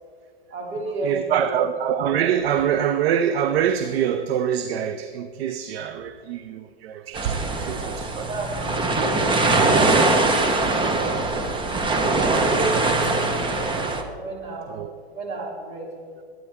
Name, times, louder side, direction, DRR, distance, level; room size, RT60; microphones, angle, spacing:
voice 1, 0.5-1.6 7.8-8.8 9.7-10.4 10.7-11.0 12.2-13.8 14.2-16.0, right 2 dB, 40° right, -2 dB, 3.4 m, -31 dB
voice 2, 1.0-8.5 9.4-10.3 10.8-11.2 14.7-14.9, right 9 dB, 70° right, 9 dB, 0.8 m, -25 dB
sound 1, 7.1-14.0, right 2 dB, 15° right, 1.0 m, -22 dB
22.5 x 9.4 x 3.6 m, 2.1 s
hypercardioid pair, 125°, 32 cm